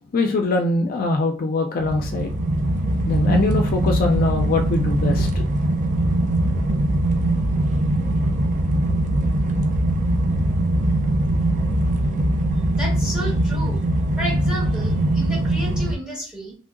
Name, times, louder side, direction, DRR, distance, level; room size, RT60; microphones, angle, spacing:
voice 1, 0.1-2.3 3.1-5.5, left 3 dB, 45° left, 0.4 m, -22 dB
sound 1, 1.8-16.0, right 1 dB, 40° right, 0.4 m, -21 dB
voice 2, 12.7-13.8 14.2-16.6, right 1 dB, 5° right, 1.6 m, -32 dB
3.1 x 2.7 x 2.5 m
head